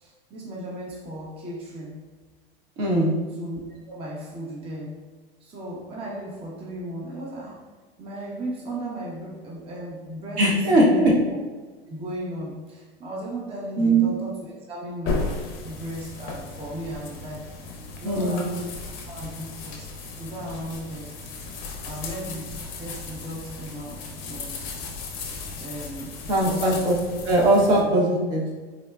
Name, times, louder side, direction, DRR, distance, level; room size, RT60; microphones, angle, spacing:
voice 1, 0.0-1.9 3.4-3.6 3.9-4.9 5.4-7.6 8.0-11.1 11.9-18.7 19.1-19.9 20.1-21.1 21.8-22.5 22.8-24.8 25.6-26.9 27.8-28.0, right 1 dB, 20° right, -3 dB, 0.5 m, -36 dB
voice 2, 2.8-3.1 10.4-11.1 13.8-14.0 18.0-18.4 26.3-26.9 27.2-28.6, right 1 dB, 55° right, -2 dB, 0.9 m, -20 dB
sound 1, 15.0-27.8, left 3 dB, 40° left, 0.5 m, -35 dB
3.7 x 2.1 x 2.3 m, 1.4 s
hypercardioid pair, 100°, 31 cm